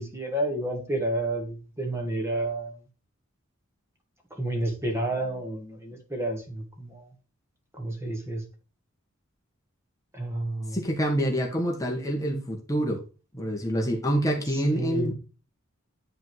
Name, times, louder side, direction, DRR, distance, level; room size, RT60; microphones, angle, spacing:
voice 1, 0.0-2.8 4.3-7.1 7.7-8.4 10.1-10.8 14.7-15.1, right 1 dB, 10° right, 1.7 m, -30 dB
voice 2, 10.7-13.0 13.3-15.1, equal, 15° left, 1.6 m, -26 dB
10.5 x 3.9 x 4.6 m
head